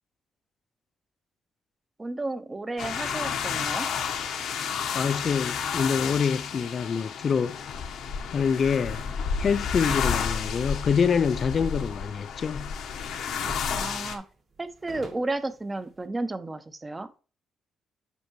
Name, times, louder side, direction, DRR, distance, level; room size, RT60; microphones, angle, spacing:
voice 1, 2.0-3.9 13.7-14.2 14.6-17.1, right 2 dB, 20° right, 0.7 m, -32 dB
sound 1, 2.8-14.2, left 6 dB, 80° left, 1.1 m, -31 dB
voice 2, 4.9-7.6 8.3-9.0 9.4-12.7, left 6 dB, 45° left, 0.3 m, -26 dB
sound 2, 9.8-10.1 11.5-13.0 13.4-13.8 14.1-14.2 14.5-16.1, right 3 dB, 55° right, 1.8 m, -44 dB
8.1 x 5.4 x 3.0 m
cardioid pair, 90°, 0 cm